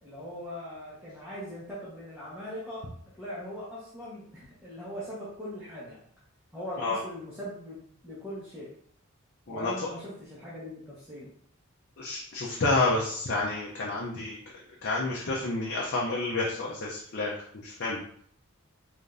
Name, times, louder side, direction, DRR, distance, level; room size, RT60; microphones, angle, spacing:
voice 1, 0.0-2.9 3.2-6.0 6.5-8.7 9.5-11.3, equal, 5° right, -10 dB, 1.1 m, -40 dB
voice 2, 12.0-14.4 14.8-17.3 17.6-18.0, left 3 dB, 50° left, -4 dB, 0.6 m, -29 dB
4.9 x 2.5 x 2.6 m, 0.62 s
head